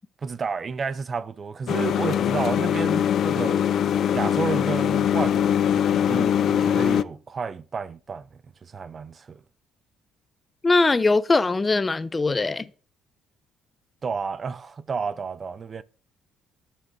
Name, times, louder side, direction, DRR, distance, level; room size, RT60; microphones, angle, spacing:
voice 1, 0.2-3.6 4.1-8.3 8.6-9.4 14.0-15.8, right 5 dB, 35° right, 0.5 m, -31 dB
sound 1, 1.7-7.0, left 9 dB, 60° left, 0.4 m, -22 dB
voice 2, 10.6-12.7, left 3 dB, 20° left, 0.8 m, -21 dB
9.2 x 7.2 x 6.3 m
cardioid pair, 90°, 0 cm